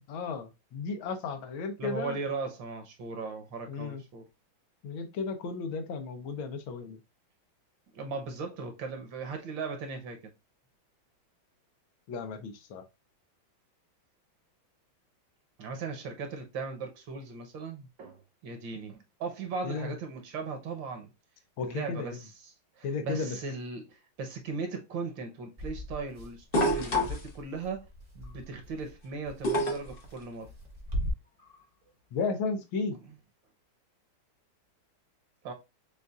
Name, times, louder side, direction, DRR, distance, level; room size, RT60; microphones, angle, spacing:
voice 1, 0.1-2.2 3.7-4.0 4.8-7.0 12.1-12.8 19.6-19.9 21.6-22.2 22.8-23.4 32.1-33.0, left 4 dB, 80° left, 1.6 m, -34 dB
voice 2, 1.8-4.2 7.9-10.3 15.6-21.1 21.6-27.9 28.1-30.5 33.0-33.1 35.4-35.5, right 4 dB, 70° right, 1.6 m, -38 dB
sound 1, 25.6-31.1, equal, 35° right, 0.7 m, -39 dB
sound 2, 26.5-27.3 29.4-30.0 31.5-31.6, equal, 45° left, 0.7 m, -26 dB
6.6 x 2.5 x 2.4 m
omnidirectional pair, 2.2 m